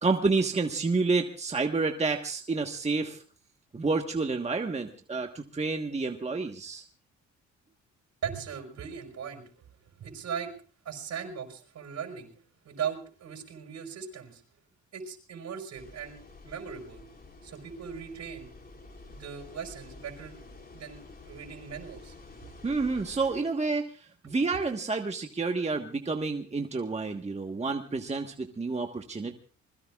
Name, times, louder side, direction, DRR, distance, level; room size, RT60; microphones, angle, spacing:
voice 1, 0.0-3.2 3.7-6.8 22.6-29.4, right 3 dB, 20° right, 4 dB, 1.4 m, -29 dB
voice 2, 8.2-9.5 10.0-10.5 10.9-12.3 12.6-14.4 14.9-17.0 17.4-18.5 19.1-20.4 20.7-22.1, right 7 dB, 65° right, 5 dB, 5.2 m, -38 dB
sound 1, 15.7-23.4, left 2 dB, 30° left, 3.5 m, -50 dB
26.5 x 21.0 x 2.4 m, 0.40 s
cardioid pair, 90°, 30 cm